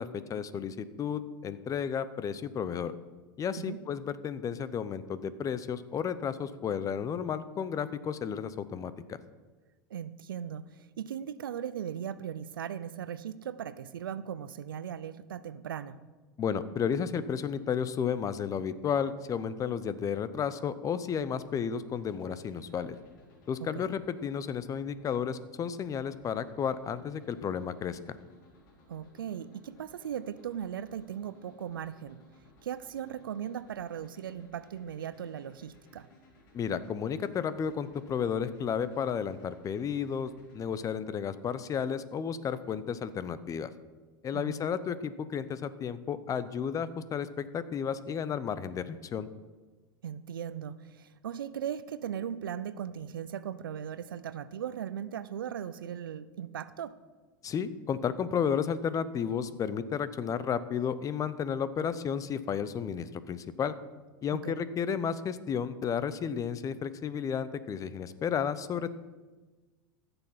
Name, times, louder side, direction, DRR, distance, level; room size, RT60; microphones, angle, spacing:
voice 1, 0.0-2.9 3.4-9.2 16.4-23.0 23.5-28.0 36.5-43.7 44.2-49.3 57.4-63.7 64.2-68.9, left 7 dB, 30° left, 14 dB, 0.7 m, -32 dB
voice 2, 9.9-16.0 23.7-23.8 28.9-32.2 32.6-36.1 44.3-44.6 50.0-57.0 64.3-64.6, right 9 dB, 90° right, 15 dB, 0.6 m, -38 dB
sound 1, 21.0-40.8, left 1 dB, 70° left, 3.6 m, -60 dB
14.5 x 7.0 x 5.7 m, 1.3 s
hypercardioid pair, 95°, 11 cm